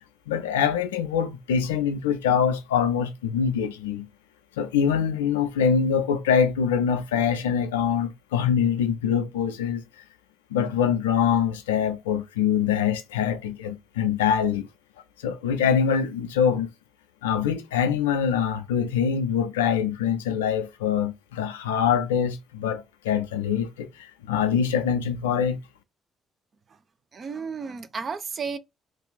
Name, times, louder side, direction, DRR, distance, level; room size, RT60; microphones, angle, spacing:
voice 1, 0.3-4.1 4.6-9.8 10.5-14.7 15.2-16.7 17.2-25.6, left 7 dB, 80° left, 0.4 m, -24 dB
voice 2, 27.1-28.6, right 5 dB, 45° right, 0.5 m, -33 dB
2.5 x 2.4 x 3.8 m
figure-of-eight pair, 45°, 0 cm